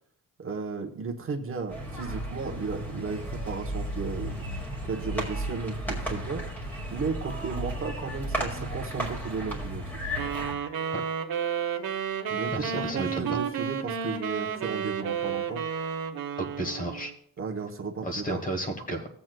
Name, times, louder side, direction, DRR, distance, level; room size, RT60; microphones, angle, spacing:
voice 1, 0.4-4.5 4.8-6.5 6.9-10.0 12.3-15.6 17.4-18.4, right 4 dB, 40° right, 2 dB, 0.9 m, -34 dB
sound 1, 1.7-10.5, right 1 dB, 5° left, 1.9 m, -34 dB
sound 2, 10.2-17.1, right 7 dB, 85° right, 1.0 m, -31 dB
voice 2, 12.5-13.4 16.4-17.1 18.0-19.1, right 1 dB, 25° left, 6 dB, 1.2 m, -32 dB
16.5 x 7.6 x 2.2 m, 0.64 s
wide cardioid pair, 175°, 34 cm